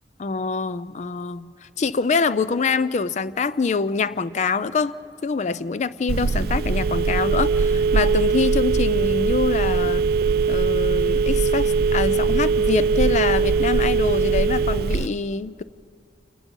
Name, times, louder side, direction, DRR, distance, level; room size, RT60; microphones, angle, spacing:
voice 1, 0.2-1.5 1.8-5.0 5.2-10.0 10.5-15.6, left 4 dB, 40° left, 16 dB, 0.4 m, -25 dB
Telephone, 6.1-15.1, right 4 dB, 60° right, 0.4 m, -21 dB
28.0 x 19.0 x 5.3 m, 2.4 s
head